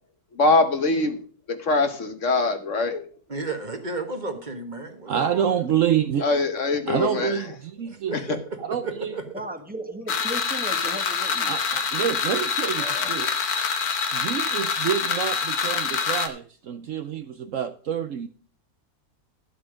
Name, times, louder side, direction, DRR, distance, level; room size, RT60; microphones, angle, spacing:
voice 1, 0.4-1.2 1.5-3.0 6.2-7.3 8.3-8.4 12.9-13.1, left 3 dB, 55° left, 8 dB, 1.4 m, -23 dB
voice 2, 3.3-5.5 7.9-9.4, right 3 dB, 30° right, 6 dB, 1.5 m, -33 dB
voice 3, 5.1-6.3 6.9-8.1 8.6-9.1 11.5-13.4 14.1-18.3, right 9 dB, 65° right, 10 dB, 0.9 m, -27 dB
voice 4, 9.3-11.8, right 1 dB, 5° right, 7 dB, 1.2 m, -36 dB
sound 1, 10.1-16.3, left 6 dB, 70° left, 1.7 m, -26 dB
12.0 x 8.0 x 5.0 m, 0.42 s
omnidirectional pair, 1.7 m